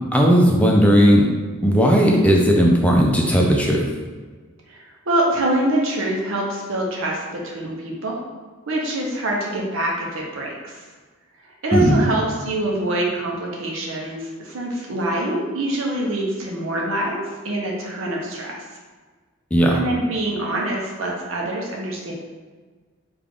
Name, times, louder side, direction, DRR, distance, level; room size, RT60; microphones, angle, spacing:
voice 1, 0.1-1.3 1.6-3.8 11.7-12.0 19.5-19.8, equal, 5° left, -1 dB, 0.4 m, -16 dB
voice 2, 4.7-8.2 8.7-10.8 11.6-18.6 19.7-22.1, right 1 dB, 70° right, -1 dB, 0.8 m, -25 dB
3.5 x 2.4 x 3.5 m, 1.4 s
head